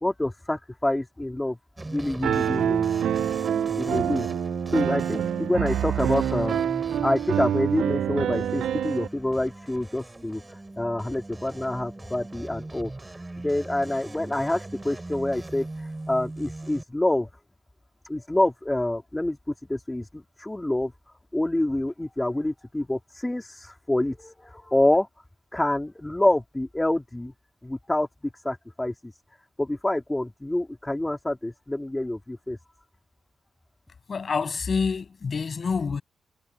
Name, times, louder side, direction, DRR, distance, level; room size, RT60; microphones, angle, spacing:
voice 1, 0.0-1.6 1.9-2.9 3.8-4.3 4.7-6.6 7.0-10.4 10.8-12.9 13.4-15.6 16.1-17.3 18.1-19.4 19.7-20.0 20.4-20.9 21.3-25.1 25.5-27.3 27.6-28.1 28.4-29.1 29.6-32.6, left 1 dB, 15° left, 3.4 m, -27 dB
sound 1, 1.8-16.8, right 2 dB, 20° right, 6.0 m, -39 dB
Piano, 2.2-9.1, right 10 dB, 80° right, 0.5 m, -26 dB
voice 2, 34.1-36.0, left 5 dB, 55° left, 7.7 m, -27 dB
supercardioid pair, 55°, 0 cm